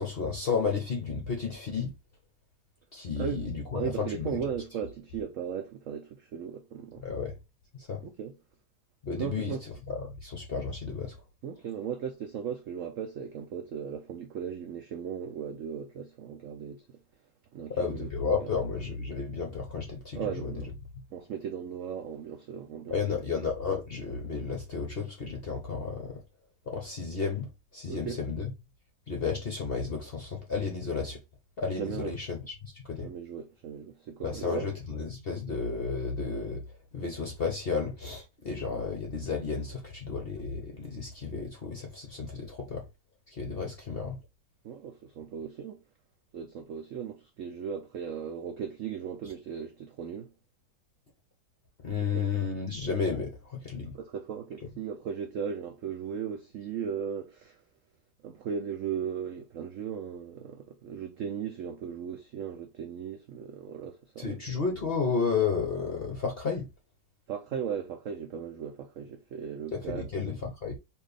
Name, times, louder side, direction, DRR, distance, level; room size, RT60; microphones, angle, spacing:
voice 1, 0.0-1.9 2.9-4.4 7.0-7.3 7.9-8.0 9.0-9.5 9.9-11.1 17.7-20.5 22.9-26.2 26.7-28.5 29.1-31.2 31.6-33.1 34.2-36.6 36.9-42.8 43.3-44.2 51.8-54.0 64.2-66.7 69.7-70.8, left 5 dB, 50° left, 0.7 m, -32 dB
voice 2, 3.7-7.1 8.0-8.4 9.2-9.6 11.4-16.9 17.5-18.1 18.4-18.5 20.1-20.7 21.1-23.0 27.9-28.2 31.7-32.2 33.0-34.7 43.6-43.7 44.6-45.8 46.3-50.3 52.1-52.2 53.9-57.6 58.2-64.6 67.3-70.1, right 7 dB, 85° right, 0.6 m, -37 dB
4.3 x 2.6 x 3.3 m
omnidirectional pair, 2.0 m